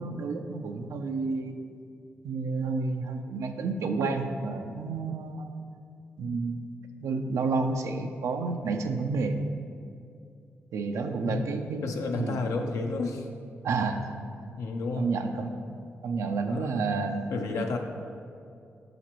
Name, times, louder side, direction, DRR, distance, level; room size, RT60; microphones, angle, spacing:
voice 1, 0.0-1.7 2.2-5.6 6.2-6.8 7.0-9.4 10.7-11.9 12.2-12.4 13.6-14.2 15.0-15.6 16.0-17.2, right 4 dB, 75° right, 5 dB, 0.5 m, -30 dB
voice 2, 11.8-13.3 14.6-15.1 16.5-16.9 17.3-17.8, left 4 dB, 80° left, 3 dB, 0.6 m, -31 dB
9.0 x 5.9 x 3.0 m, 2.4 s
supercardioid pair, 45°, 5 cm